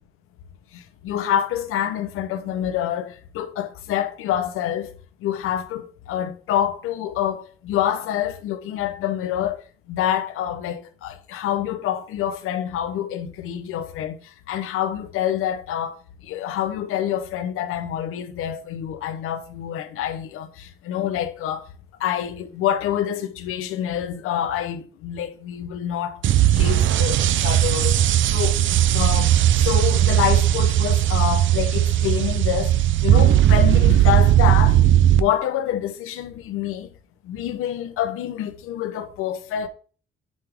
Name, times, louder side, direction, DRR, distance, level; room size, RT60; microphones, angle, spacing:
voice 1, 0.7-4.9 5.2-9.6 9.9-16.0 16.2-21.6 22.0-28.0 28.3-28.6 28.9-29.3 29.6-34.8 35.1-36.9 37.2-39.7, left 10 dB, 90° left, 0.7 m, -27 dB
sound 1, 26.2-35.2, right 12 dB, 65° right, 0.4 m, -17 dB
9.1 x 3.5 x 3.4 m
cardioid pair, 80°, 21 cm